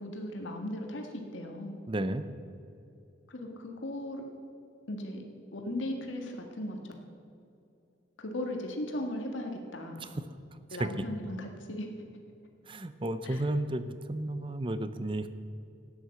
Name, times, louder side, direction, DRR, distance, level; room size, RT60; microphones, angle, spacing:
voice 1, 0.0-1.8 3.3-4.2 4.9-5.2 5.5-6.9 8.2-10.1 10.7-11.9 13.2-13.4, left 1 dB, 85° left, 2 dB, 1.8 m, -37 dB
voice 2, 1.9-2.3 10.5-11.0 12.7-15.3, right 1 dB, 25° right, 12 dB, 0.6 m, -33 dB
13.0 x 9.7 x 7.6 m, 2.6 s
head